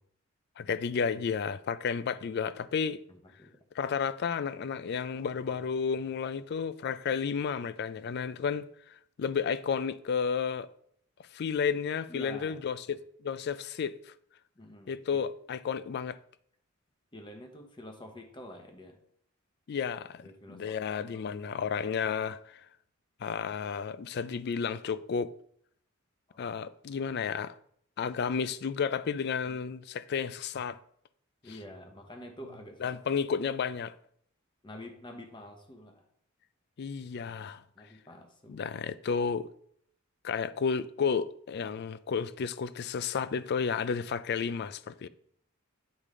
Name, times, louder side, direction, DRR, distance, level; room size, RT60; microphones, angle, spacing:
voice 1, 0.6-3.0 3.8-8.7 9.2-10.7 11.3-13.0 13.2-14.0 14.9-16.2 19.7-22.6 23.2-25.3 26.4-27.5 28.0-30.8 32.8-33.9 36.8-37.6 38.5-39.5 40.2-45.1, left 6 dB, 50° left, 0.3 m, -32 dB
voice 2, 3.1-3.5 12.1-12.6 14.6-15.2 17.1-19.0 20.2-21.4 26.3-26.4 31.4-32.9 34.6-36.1 37.8-38.6, left 1 dB, 20° left, 0.9 m, -48 dB
8.4 x 5.0 x 3.7 m
head